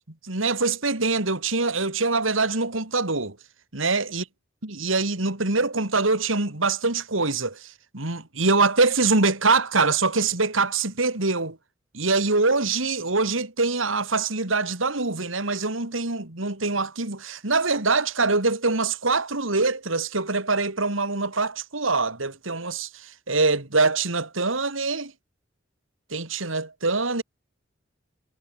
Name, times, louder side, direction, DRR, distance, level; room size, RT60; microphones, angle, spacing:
voice 1, 0.2-3.4 3.7-4.2 4.6-11.6 11.9-25.1 26.1-27.2, right 3 dB, 90° right, 3.3 m, -24 dB
head